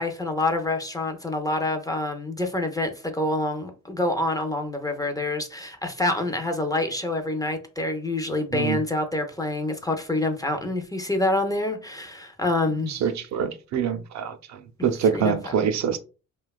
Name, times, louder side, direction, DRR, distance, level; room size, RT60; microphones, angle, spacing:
voice 1, 0.0-12.9 14.8-14.9 15.1-15.7, left 2 dB, 10° left, 0.4 m, -27 dB
voice 2, 12.9-14.3 14.8-16.0, right 7 dB, 65° right, 0.5 m, -25 dB
2.8 x 2.2 x 2.3 m
cardioid pair, 90°, 30 cm